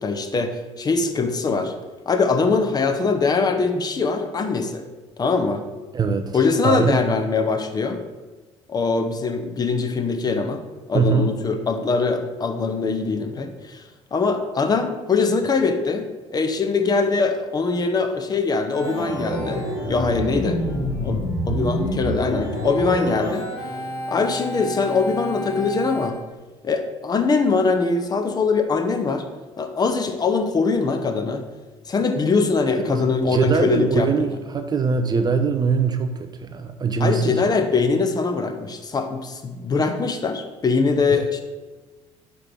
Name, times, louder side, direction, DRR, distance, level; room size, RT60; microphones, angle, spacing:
voice 1, 0.0-1.7 2.1-4.8 5.2-5.6 6.3-8.0 8.7-10.6 10.9-13.8 14.1-20.6 21.0-23.5 24.1-26.2 26.6-29.3 29.6-31.4 31.9-34.1 37.0-41.4, left 4 dB, 25° left, 6 dB, 0.7 m, -22 dB
voice 2, 5.9-7.0 10.9-11.3 32.6-37.5, right 5 dB, 25° right, 7 dB, 0.5 m, -22 dB
Organ, 18.7-26.1, equal, 75° left, 2.4 m, -28 dB
4.9 x 4.9 x 6.0 m, 1.2 s
figure-of-eight pair, 55°, 15 cm